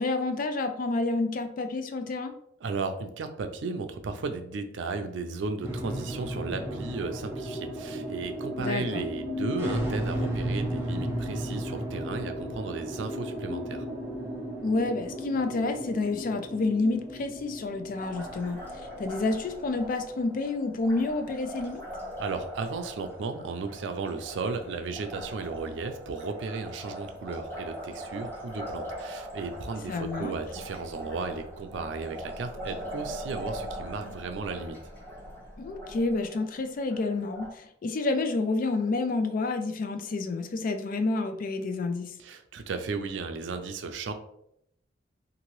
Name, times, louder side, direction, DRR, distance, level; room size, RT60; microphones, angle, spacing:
voice 1, 0.0-2.4 8.6-9.0 14.6-18.6 19.0-21.8 29.9-30.3 35.6-42.1, left 3 dB, 50° left, 7 dB, 0.3 m, -29 dB
voice 2, 2.6-13.8 22.2-34.8 42.2-44.1, right 4 dB, 90° right, 8 dB, 0.4 m, -35 dB
sound 1, 5.6-20.3, equal, 15° right, 0.5 m, -35 dB
Liquid, 18.0-37.5, equal, 10° left, 0.9 m, -41 dB
2.8 x 2.5 x 3.0 m, 0.74 s
head